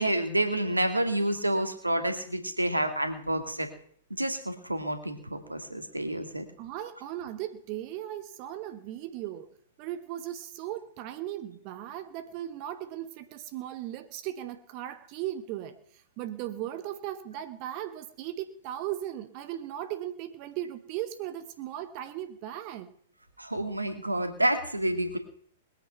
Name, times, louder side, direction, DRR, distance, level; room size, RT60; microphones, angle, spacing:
voice 1, 0.0-3.7 4.2-6.4 23.4-25.2, right 1 dB, 85° right, 2.1 m, -29 dB
voice 2, 6.6-9.5 9.8-22.9, right 12 dB, 40° right, 1.2 m, -37 dB
21.0 x 9.2 x 5.8 m
figure-of-eight pair, 105°, 0 cm